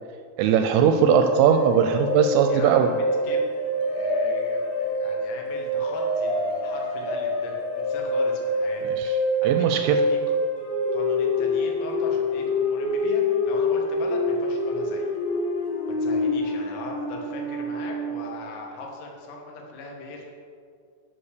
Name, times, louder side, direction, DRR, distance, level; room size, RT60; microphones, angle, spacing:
voice 1, 0.4-3.0 9.0-9.1 9.4-10.0, right 8 dB, 85° right, 6 dB, 2.8 m, -20 dB
sound 1, 1.0-18.4, left 1 dB, 55° left, 2.0 m, -26 dB
voice 2, 2.5-10.4 10.9-15.1 15.9-20.3, left 3 dB, 85° left, 0 dB, 4.3 m, -39 dB
12.5 x 5.8 x 6.6 m, 2.3 s
omnidirectional pair, 5.9 m